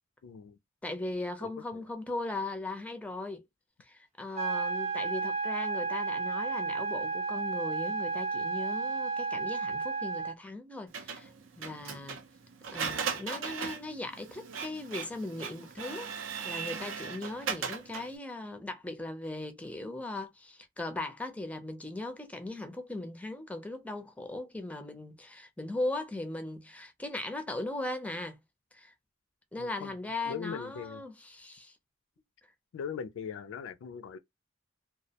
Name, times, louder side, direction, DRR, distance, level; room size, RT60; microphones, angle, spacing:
voice 1, 0.2-0.6 1.4-1.8 29.6-29.9 30.3-31.0 32.7-34.2, left 7 dB, 75° left, 0.3 m, -40 dB
voice 2, 0.8-3.4 3.8-11.3 11.6-12.2 12.7-16.1 16.4-28.4 28.7-28.9 29.5-31.8, left 2 dB, 5° left, 0.4 m, -38 dB
sound 1, 4.4-10.4, right 4 dB, 35° right, 0.6 m, -32 dB
Printer, 10.9-18.2, right 6 dB, 80° right, 0.5 m, -38 dB
2.2 x 2.0 x 2.7 m
head